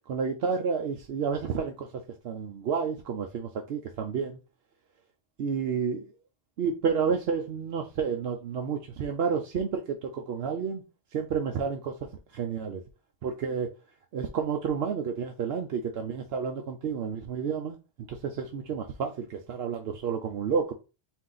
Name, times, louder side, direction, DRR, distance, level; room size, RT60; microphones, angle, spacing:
voice 1, 0.1-4.4 5.4-6.1 6.6-10.8 11.1-11.9 12.3-12.8 13.2-13.7 14.1-17.8 18.1-20.7, right 6 dB, 70° right, 0.8 m, -30 dB
4.2 x 2.7 x 3.8 m
omnidirectional pair, 1.1 m